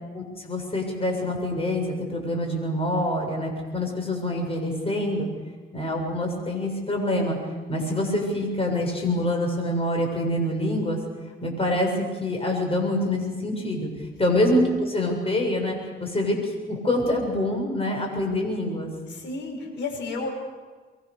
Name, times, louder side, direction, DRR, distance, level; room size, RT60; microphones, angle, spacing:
voice 1, 0.1-5.3 5.7-7.4 7.7-11.0 11.4-18.9, left 1 dB, 30° left, 2 dB, 7.3 m, -26 dB
voice 2, 19.1-20.3, left 3 dB, 65° left, 2 dB, 6.9 m, -32 dB
24.5 x 22.5 x 6.8 m, 1.4 s
cardioid pair, 90°, 20 cm